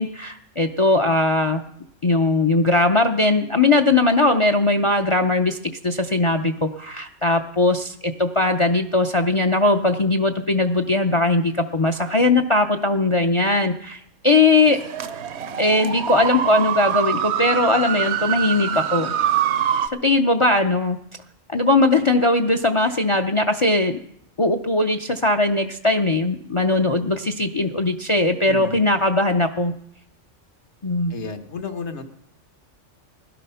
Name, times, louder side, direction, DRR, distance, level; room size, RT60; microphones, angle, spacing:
voice 1, 0.0-1.6 2.0-5.6 5.8-14.8 15.6-19.1 20.0-21.0 21.5-24.0 24.4-29.7 30.8-31.2, left 2 dB, 35° left, 8 dB, 0.5 m, -19 dB
sound 1, 14.6-19.9, right 9 dB, 65° right, 1.0 m, -24 dB
voice 2, 28.5-28.8 31.1-32.1, left 3 dB, 65° left, 6 dB, 1.5 m, -32 dB
17.0 x 12.0 x 5.6 m, 0.72 s
omnidirectional pair, 1.3 m